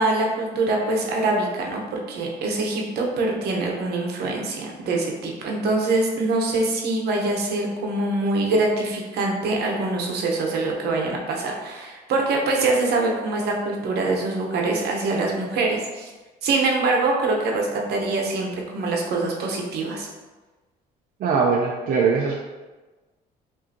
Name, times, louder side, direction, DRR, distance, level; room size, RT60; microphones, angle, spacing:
voice 1, 0.0-16.1 16.4-20.1, right 2 dB, 70° right, 0 dB, 0.9 m, -24 dB
voice 2, 21.2-22.3, right 5 dB, 55° right, -2 dB, 0.5 m, -21 dB
5.0 x 2.7 x 2.7 m, 1.2 s
cardioid pair, 110°, 17 cm